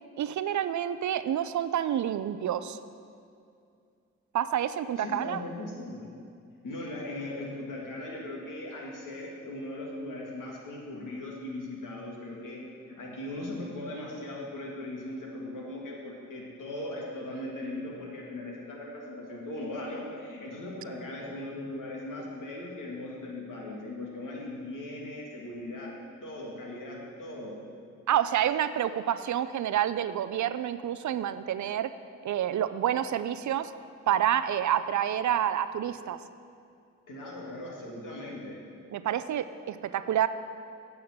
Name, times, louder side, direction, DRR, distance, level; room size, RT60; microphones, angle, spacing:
voice 1, 0.2-2.8 4.3-5.4 28.1-31.9 32.2-33.7 34.1-36.2 38.9-40.3, right 10 dB, 60° right, 13 dB, 0.5 m, -28 dB
voice 2, 5.0-6.1 6.6-12.6 12.9-25.9 26.2-27.5 37.1-38.6, left 1 dB, 65° left, -2 dB, 2.3 m, -39 dB
8.6 x 5.8 x 7.9 m, 2.4 s
hypercardioid pair, 40°, 34 cm